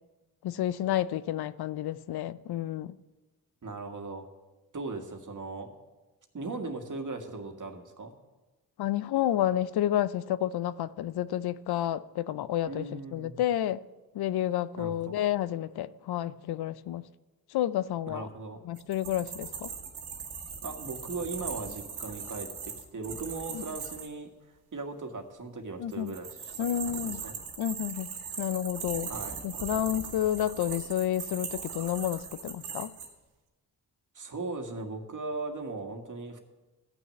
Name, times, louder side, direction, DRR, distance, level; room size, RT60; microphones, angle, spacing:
voice 1, 0.4-3.0 8.8-13.8 14.1-17.0 17.5-18.3 18.7-19.7 23.5-23.6 25.8-26.1 26.6-27.2 27.6-28.1 28.4-29.1 29.4-32.9, left 12 dB, 75° left, 0.6 m, -30 dB
voice 2, 3.6-4.3 4.7-5.7 6.3-8.1 12.7-13.4 14.8-15.2 18.1-18.7 20.6-24.3 24.7-27.4 29.1-29.4 34.1-36.4, right 3 dB, 50° right, 1.9 m, -38 dB
sound 1, 18.8-24.1 25.9-33.1, right 6 dB, 80° right, 1.9 m, -39 dB
13.5 x 6.2 x 9.0 m
cardioid pair, 55°, 38 cm